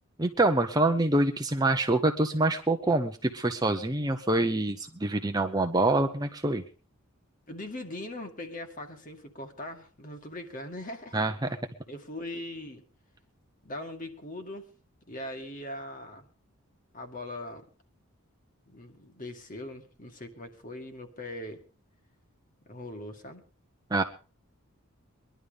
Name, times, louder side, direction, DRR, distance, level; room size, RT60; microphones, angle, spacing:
voice 1, 0.2-6.6 11.1-11.5 23.9-24.0, right 2 dB, 20° right, 6 dB, 0.9 m, -26 dB
voice 2, 7.5-11.2 11.9-12.8 13.6-14.7 15.1-16.3 16.9-17.6 18.7-21.6 22.7-23.4, left 1 dB, 35° left, 5 dB, 2.2 m, -40 dB
21.5 x 11.5 x 5.2 m, 0.37 s
head